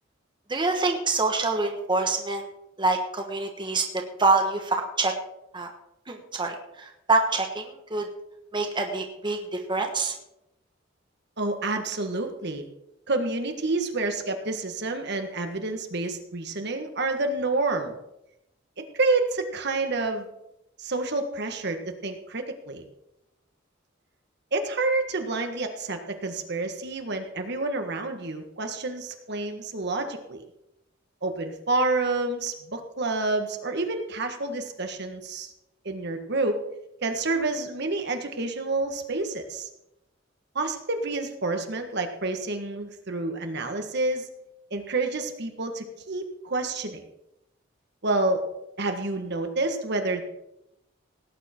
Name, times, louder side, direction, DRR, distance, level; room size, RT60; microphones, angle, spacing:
voice 1, 0.5-2.5 2.8-3.8 4.2-5.1 5.5-5.7 6.1-8.1 8.5-9.4 9.7-10.1, right 3 dB, 25° right, 3 dB, 1.3 m, -25 dB
voice 2, 11.4-12.6 13.1-18.0 18.8-20.3 20.8-22.8 24.5-30.4 31.2-35.5 35.9-36.6 37.0-39.7 40.6-44.3 44.7-47.0 48.0-48.4 48.8-50.2, right 2 dB, 60° right, 5 dB, 1.6 m, -28 dB
18.0 x 9.3 x 4.5 m, 0.84 s
head